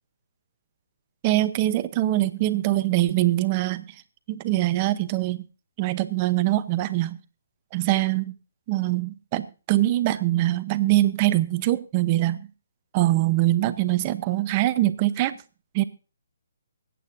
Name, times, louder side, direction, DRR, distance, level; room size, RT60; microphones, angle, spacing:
voice 1, 1.2-4.0 4.3-5.4 5.8-7.2 7.7-8.3 8.7-12.5 12.9-15.4 15.7-15.8, right 16 dB, 25° right, 13 dB, 0.7 m, -23 dB
23.5 x 8.6 x 2.6 m, 0.34 s
hypercardioid pair, 160°, 0 cm